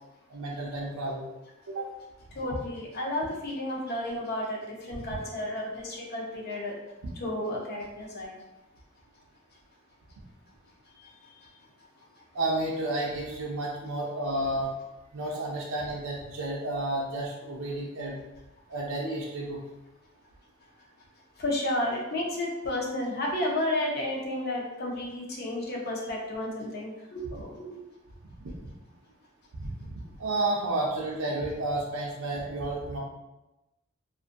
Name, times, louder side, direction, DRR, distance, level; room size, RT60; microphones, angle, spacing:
voice 1, 0.3-1.2 1.7-1.9 7.0-7.1 12.3-14.7 15.1-18.2 18.7-19.6 29.5-29.9 30.2-33.0, right 2 dB, 75° right, -4 dB, 0.5 m, -31 dB
voice 2, 2.3-6.7 7.2-8.4 11.0-11.1 21.4-27.7, left 1 dB, 50° left, -2 dB, 0.6 m, -32 dB
2.5 x 2.5 x 2.5 m, 0.99 s
head